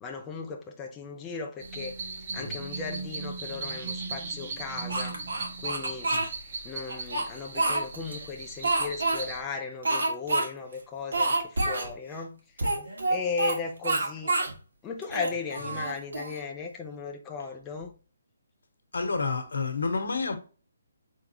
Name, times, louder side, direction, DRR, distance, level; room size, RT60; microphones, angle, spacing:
voice 1, 0.0-2.0 2.3-5.2 5.6-6.1 6.6-12.7 13.1-14.3 14.8-17.9, left 5 dB, 10° left, 0.4 m, -36 dB
sound 1, 1.6-9.4, right 4 dB, 25° right, 0.9 m, -38 dB
Speech, 4.9-6.3 6.9-8.2 8.6-9.2 9.8-10.5 10.7-10.8 11.1-11.9 12.6-13.6 13.8-14.5 15.0-16.4, right 2 dB, 90° right, 1.9 m, -27 dB
voice 2, 18.9-20.4, left 4 dB, 80° left, 1.2 m, -30 dB
4.6 x 3.6 x 2.8 m
hypercardioid pair, 175°, 0 cm